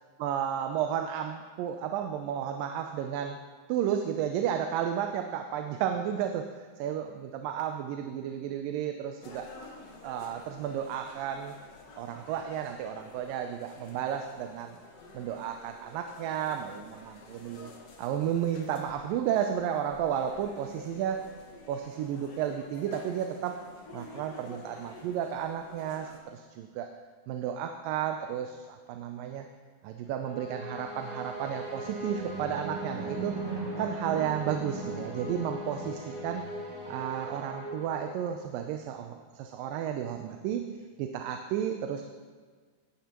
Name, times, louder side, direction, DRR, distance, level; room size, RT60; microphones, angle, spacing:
voice 1, 0.2-3.4 3.7-9.5 10.0-11.6 12.0-14.8 15.1-17.7 18.0-21.3 21.7-23.6 23.9-26.9 27.3-29.5 29.8-33.4 33.8-36.5 36.9-40.7 41.0-42.0, right 9 dB, 85° right, 5 dB, 2.4 m, -32 dB
sound 1, 9.2-26.2, left 3 dB, 55° left, 2.4 m, -50 dB
sound 2, 30.2-38.6, right 1 dB, 50° right, 2.2 m, -38 dB
17.5 x 12.5 x 3.0 m, 1.5 s
omnidirectional pair, 3.9 m